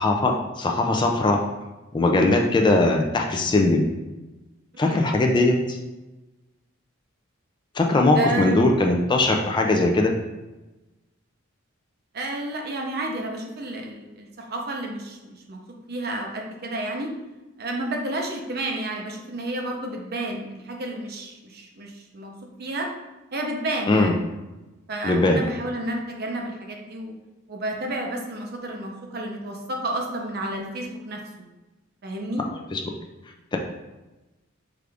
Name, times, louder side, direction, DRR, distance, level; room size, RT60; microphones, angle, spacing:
voice 1, 0.0-1.4 1.9-3.8 4.8-5.8 7.8-10.1 23.9-24.1 25.0-25.4 32.7-32.8 33.5-33.6, left 2 dB, 20° left, 2 dB, 0.3 m, -20 dB
voice 2, 8.1-8.7 12.1-15.6 15.9-17.1 17.6-22.3 22.6-22.9 23.3-24.2 24.9-27.1 27.5-31.2 32.0-32.5, right 1 dB, 50° right, 1 dB, 0.7 m, -31 dB
4.8 x 2.5 x 3.4 m, 1.1 s
head